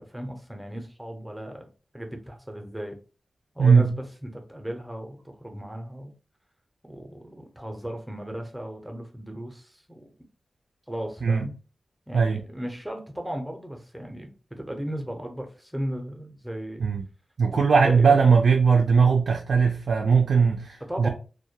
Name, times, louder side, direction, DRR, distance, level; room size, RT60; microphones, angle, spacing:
voice 1, 0.0-1.7 1.9-3.0 3.5-6.1 6.8-10.1 10.9-11.6 12.1-16.8 17.5-18.2 20.9-21.1, equal, 5° right, 0.6 m, -36 dB
voice 2, 17.4-21.1, right 5 dB, 80° right, 0.3 m, -19 dB
2.2 x 2.1 x 2.7 m
wide cardioid pair, 125°, 0 cm